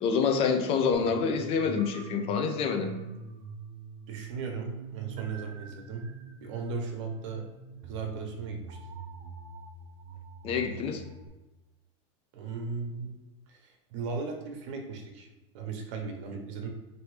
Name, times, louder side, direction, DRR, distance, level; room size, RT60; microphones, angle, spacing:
voice 1, 0.0-2.9 10.4-11.0, left 6 dB, 35° left, 5 dB, 0.5 m, -27 dB
sound 1, 0.9-11.3, right 4 dB, 40° right, 0.5 m, -44 dB
voice 2, 4.1-6.1 6.4-7.5 7.8-8.8 10.6-10.7 12.3-13.2 13.5-15.3 15.5-16.7, right 4 dB, 70° right, 3 dB, 0.9 m, -37 dB
4.4 x 2.7 x 3.1 m, 1.1 s
supercardioid pair, 145°, 16 cm